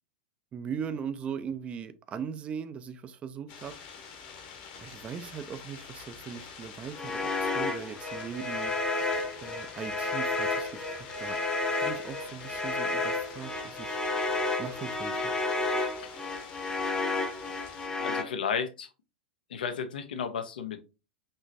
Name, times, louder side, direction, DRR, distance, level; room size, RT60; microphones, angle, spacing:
voice 1, 0.5-3.7 4.8-8.7 9.4-11.4 11.8-14.0 14.6-15.3, right 7 dB, 20° right, 0.4 m, -39 dB
sound 1, 3.5-17.9, left 6 dB, 45° left, 1.1 m, -47 dB
sound 2, 6.9-18.2, left 3 dB, 15° left, 0.8 m, -31 dB
voice 2, 18.0-18.9 19.5-20.8, left 7 dB, 65° left, 0.6 m, -33 dB
5.4 x 2.9 x 2.6 m
figure-of-eight pair, 95°, 5 cm